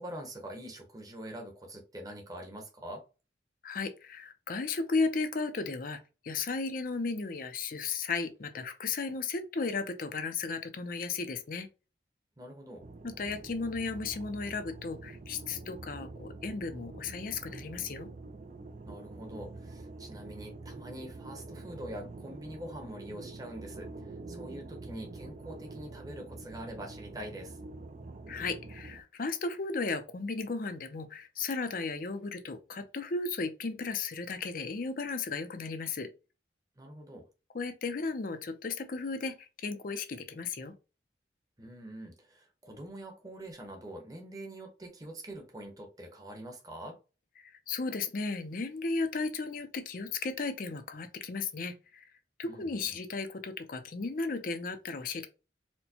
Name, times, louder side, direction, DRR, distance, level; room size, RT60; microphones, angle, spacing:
voice 1, 0.0-3.0 12.4-12.8 18.8-27.6 36.8-37.3 41.6-47.0 52.4-53.0, right 1 dB, 20° right, 0.9 m, -44 dB
voice 2, 3.6-11.7 13.0-18.1 28.3-36.1 37.5-40.7 47.4-52.0 52.4-55.3, left 4 dB, 50° left, 0.5 m, -35 dB
sound 1, 12.8-29.0, right 3 dB, 40° right, 0.4 m, -46 dB
4.3 x 2.1 x 2.8 m
head